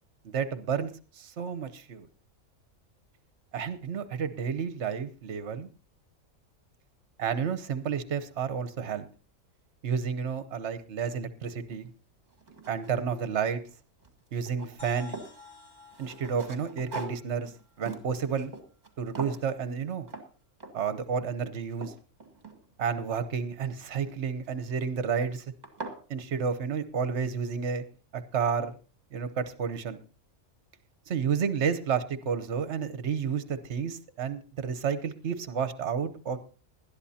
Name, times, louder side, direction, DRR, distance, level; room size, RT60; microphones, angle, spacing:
voice 1, 0.2-2.1 3.5-5.7 7.2-9.1 9.8-11.9 12.7-13.6 14.3-15.1 16.0-17.5 17.8-18.5 19.0-20.1 20.7-21.9 22.8-25.4 26.1-27.8 28.1-28.7 29.1-30.0 31.1-36.4, right 6 dB, 55° right, 12 dB, 1.2 m, -31 dB
sound 1, 11.7-11.8 12.3-13.7 14.0-15.4 15.9-18.9 19.2-19.5 20.1-20.3 20.6-21.0 21.4-23.0 24.4-24.8 25.3-25.4 25.6-26.0, right 3 dB, 30° right, 1.9 m, -42 dB
sound 2, 14.8-18.5, left 3 dB, 20° left, 4.4 m, -53 dB
20.0 x 12.0 x 2.8 m, 0.37 s
omnidirectional pair, 1.4 m